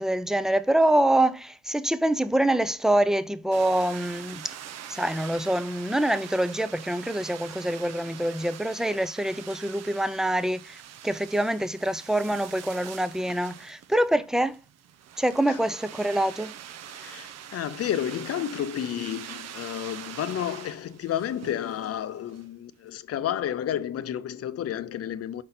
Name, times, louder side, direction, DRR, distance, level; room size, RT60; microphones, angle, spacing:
voice 1, 0.0-4.5 4.9-14.6 15.2-16.5, right 1 dB, ahead, 0.4 m, -25 dB
sound 1, 3.5-22.5, right 10 dB, 60° right, 0.6 m, -44 dB
voice 2, 16.9-25.4, left 10 dB, 50° left, 0.6 m, -31 dB
5.3 x 4.0 x 5.7 m
cardioid pair, 90°, 30 cm